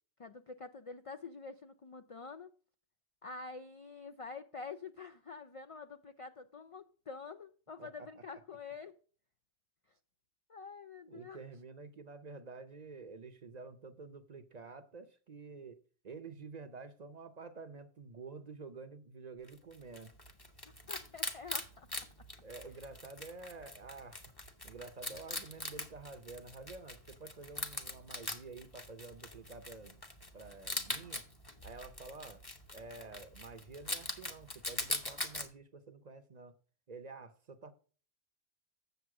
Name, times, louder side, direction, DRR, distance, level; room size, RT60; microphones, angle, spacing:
voice 1, 0.2-2.5 3.2-9.0 10.5-11.4 20.7-21.9, left 4 dB, 50° left, 0.4 m, -47 dB
voice 2, 7.8-8.1 11.1-20.1 22.4-24.2 24.6-30.0 30.3-31.2 31.6-32.5 32.7-36.6 36.9-37.7, right 4 dB, 45° right, 0.8 m, -49 dB
Wild animals, 19.5-35.5, left 2 dB, 20° left, 1.0 m, -42 dB
8.1 x 6.9 x 4.7 m
omnidirectional pair, 1.1 m